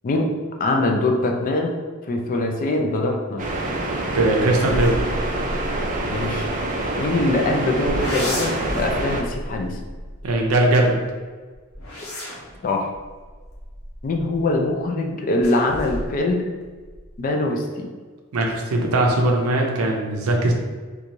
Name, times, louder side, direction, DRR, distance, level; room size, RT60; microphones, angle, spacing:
voice 1, 0.6-1.7 2.1-3.5 6.1-6.5 7.0-9.8 12.6-12.9 14.0-16.5 17.2-17.9, left 2 dB, 40° left, 2 dB, 0.4 m, -23 dB
sound 1, 3.4-9.2, right 2 dB, 35° right, 0.4 m, -26 dB
voice 2, 4.1-5.0 10.2-11.0 18.3-20.5, right 1 dB, 90° right, 1 dB, 0.5 m, -19 dB
sound 2, 4.6-7.3 7.8-10.9 11.5-14.6 15.4-16.3 16.6-17.2, equal, 70° left, 0.8 m, -32 dB
3.0 x 2.3 x 2.6 m, 1.4 s
head